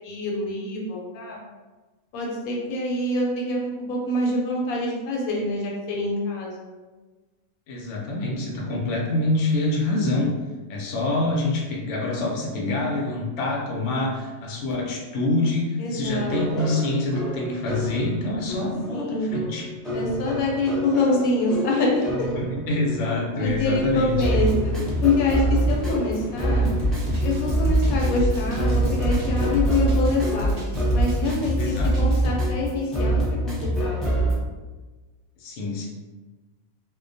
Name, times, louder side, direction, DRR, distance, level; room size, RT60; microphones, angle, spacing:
voice 1, 0.0-1.4 2.1-6.7 15.8-16.7 18.9-19.3 19.9-22.3 23.4-24.7 25.0-26.7 27.2-30.5 30.9-34.3, left 2 dB, 85° left, -2 dB, 1.0 m, -25 dB
voice 2, 7.7-10.3 10.7-19.7 22.4-24.4 31.6-31.9 35.4-35.9, left 2 dB, 65° left, -2 dB, 0.7 m, -26 dB
sound 1, 16.0-34.3, right 1 dB, ahead, 0.4 m, -26 dB
sound 2, 23.4-29.6, equal, 80° right, 1.0 m, -36 dB
Drum kit, 26.8-32.2, left 1 dB, 55° right, 0.8 m, -28 dB
2.3 x 2.1 x 2.6 m, 1.2 s
omnidirectional pair, 1.5 m